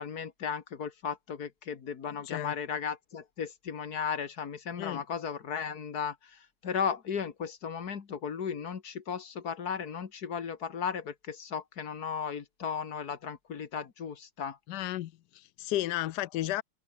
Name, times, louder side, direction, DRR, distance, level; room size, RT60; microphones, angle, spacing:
voice 1, 0.0-14.6, left 7 dB, 45° left, 2.1 m, -35 dB
voice 2, 2.1-2.5 4.8-5.0 14.7-16.6, left 14 dB, 70° left, 1.0 m, -33 dB
omnidirectional pair, 2.4 m